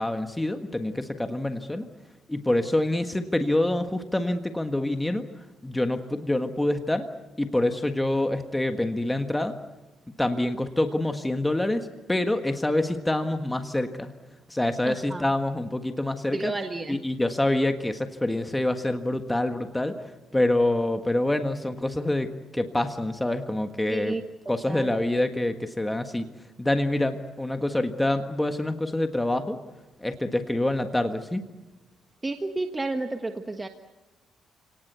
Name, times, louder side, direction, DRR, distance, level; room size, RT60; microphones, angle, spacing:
voice 1, 0.0-1.8 2.3-5.2 5.6-7.0 7.4-9.5 10.2-14.1 14.5-16.5 16.9-20.0 20.3-24.2 24.5-26.3 26.6-29.6 30.0-31.4, left 1 dB, 10° left, 7 dB, 1.6 m, -26 dB
voice 2, 14.8-15.3 16.3-17.0 23.9-24.2 24.7-24.9 32.2-33.7, right 2 dB, 20° right, 6 dB, 1.4 m, -31 dB
30.0 x 18.5 x 8.2 m, 1.1 s
cardioid pair, 90°, 0 cm